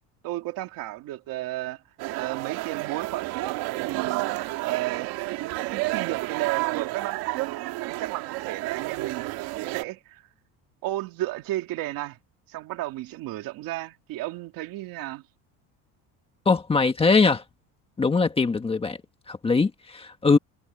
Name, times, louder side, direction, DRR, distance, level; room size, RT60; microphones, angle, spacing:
voice 1, 0.2-1.8 2.1-3.6 3.8-4.2 4.6-10.2 10.8-12.2 12.5-15.2, right 16 dB, 65° right, 2.4 m, -33 dB
sound 1, 2.0-9.8, right 19 dB, 80° right, 2.1 m, -31 dB
voice 2, 16.4-17.4 18.0-19.0 19.3-20.4, left 4 dB, 15° left, 1.7 m, -21 dB
cardioid pair, 165°, 37 cm